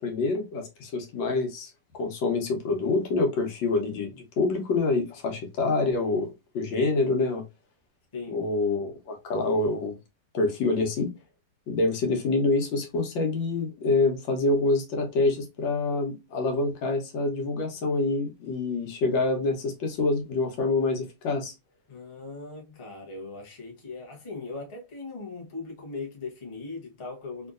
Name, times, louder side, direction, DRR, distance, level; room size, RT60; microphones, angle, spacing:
voice 1, 0.0-7.4 8.3-10.0 10.3-11.1 11.7-21.5, left 3 dB, 85° left, 1.7 m, -26 dB
voice 2, 8.1-8.4 21.9-27.5, left 3 dB, 25° left, 0.7 m, -39 dB
3.6 x 2.7 x 2.4 m
omnidirectional pair, 2.0 m